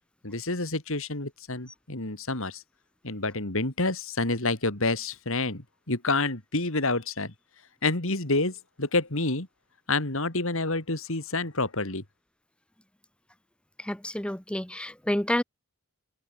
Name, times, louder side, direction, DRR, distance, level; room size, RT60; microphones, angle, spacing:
voice 1, 0.2-2.6 3.0-7.3 7.8-9.5 9.9-12.0, left 2 dB, 65° left, 3.3 m, -28 dB
voice 2, 13.8-15.4, left 1 dB, 5° left, 0.7 m, -29 dB
head